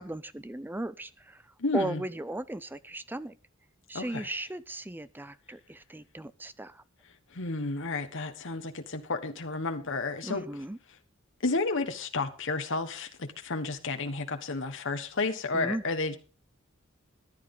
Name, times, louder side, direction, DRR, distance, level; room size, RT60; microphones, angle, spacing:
voice 1, 0.0-1.4 1.7-3.3 3.9-6.8 10.2-10.8 15.5-15.8, right 1 dB, 10° right, 0.5 m, -36 dB
voice 2, 1.6-2.0 3.9-4.3 7.3-10.4 11.4-16.2, left 3 dB, 65° left, 1.4 m, -31 dB
14.5 x 11.0 x 3.9 m
head